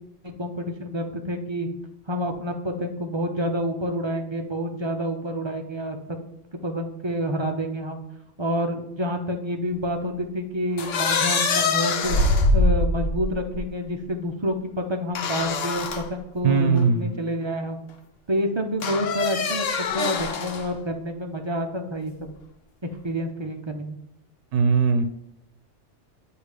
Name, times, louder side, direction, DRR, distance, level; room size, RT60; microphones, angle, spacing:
voice 1, 0.2-1.7 2.1-6.0 6.6-8.0 8.4-12.2 12.5-17.8 18.3-22.3 23.0-24.0, equal, 40° right, 4 dB, 0.4 m, -28 dB
sound 1, 10.8-13.6 15.2-16.1 16.8-16.9 18.8-20.7, left 3 dB, 85° left, 1.1 m, -24 dB
voice 2, 16.4-17.2 24.5-25.0, right 5 dB, 75° right, 8 dB, 0.9 m, -20 dB
8.1 x 2.8 x 4.8 m, 0.85 s
omnidirectional pair, 1.2 m